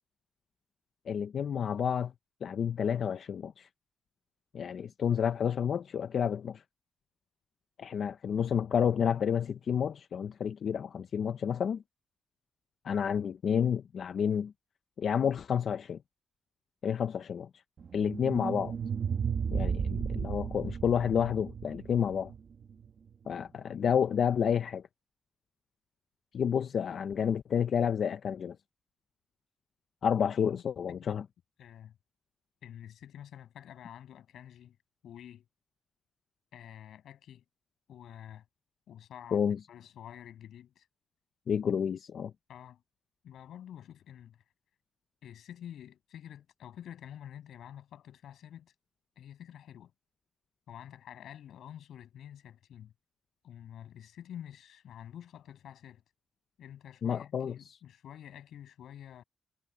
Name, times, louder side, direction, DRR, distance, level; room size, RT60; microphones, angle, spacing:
voice 1, 1.1-2.1 2.4-3.7 4.5-6.6 7.8-11.8 12.8-14.5 15.0-16.0 16.8-17.5 17.9-18.7 19.5-22.3 23.3-24.8 26.3-28.6 30.0-31.2 39.3-39.6 41.5-42.3 57.0-57.8, left 8 dB, 50° left, 0.5 m, -30 dB
sound 1, 17.8-22.9, right 7 dB, 45° right, 1.3 m, -34 dB
voice 2, 30.4-31.2 31.6-32.0 32.6-34.8 35.0-35.5 36.5-37.4 37.9-38.5 38.9-40.9 42.5-42.8 43.2-44.4 45.2-48.7 49.2-49.9 50.7-52.9 53.4-56.0 56.6-59.2, left 10 dB, 80° left, 7.1 m, -48 dB
wide cardioid pair, 175°, 0 cm